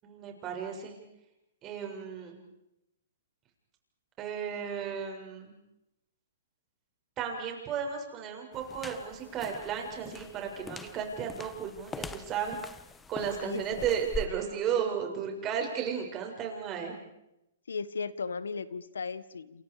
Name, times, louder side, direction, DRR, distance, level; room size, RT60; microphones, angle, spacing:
voice 1, 0.0-1.0 1.6-2.4 4.2-5.5 7.2-12.6 13.1-16.9, right 7 dB, 25° right, 2 dB, 7.1 m, -34 dB
sound 1, 8.5-14.3, left 4 dB, 10° left, 1.3 m, -43 dB
voice 2, 13.2-13.8 17.7-19.6, left 5 dB, 90° left, 16 dB, 1.6 m, -37 dB
28.5 x 28.0 x 5.1 m, 0.86 s
hypercardioid pair, 140°, 0 cm